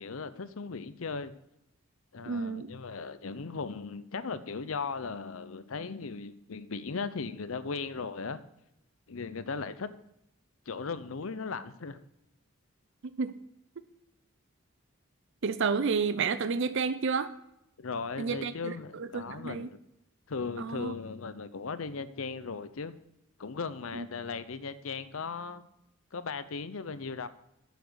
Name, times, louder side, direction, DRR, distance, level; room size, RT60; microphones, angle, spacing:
voice 1, 0.0-1.3 2.1-8.4 9.1-9.9 10.7-12.0 17.8-19.8 20.3-22.9 23.4-25.6 26.1-27.3, left 4 dB, 75° left, 14 dB, 0.7 m, -37 dB
voice 2, 2.3-2.7 13.2-13.3 15.4-17.3 18.2-18.7 19.0-19.7 20.6-20.9 23.9-24.1, right 5 dB, 60° right, 13 dB, 0.5 m, -30 dB
9.2 x 7.2 x 6.3 m, 0.83 s
head